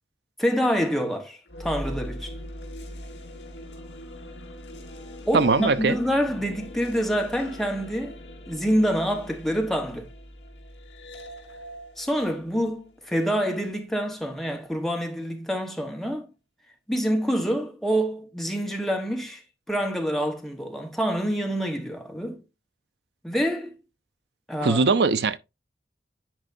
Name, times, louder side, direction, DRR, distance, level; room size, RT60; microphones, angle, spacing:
voice 1, 0.4-2.4 5.2-8.2 8.5-10.1 12.0-16.3 16.9-19.4 19.7-22.4 23.2-23.7 24.5-24.8, equal, ahead, 1.1 m, -26 dB
sound 1, 1.5-13.6, equal, 80° left, 3.0 m, -41 dB
voice 2, 5.3-6.0 24.6-25.4, right 4 dB, 70° right, 0.5 m, -21 dB
10.0 x 4.4 x 2.6 m
head